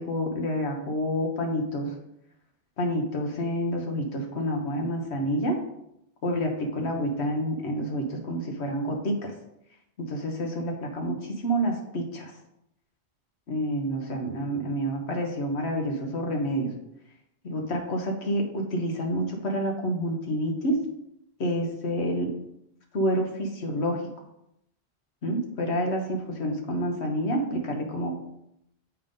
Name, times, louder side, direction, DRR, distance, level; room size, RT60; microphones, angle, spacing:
voice 1, 0.0-1.9 2.8-5.6 6.2-9.3 10.0-12.3 13.5-16.7 17.4-20.8 21.4-22.3 22.9-24.0 25.2-28.1, equal, 85° left, 2 dB, 1.4 m, -28 dB
7.3 x 3.8 x 5.3 m, 0.80 s
omnidirectional pair, 1.1 m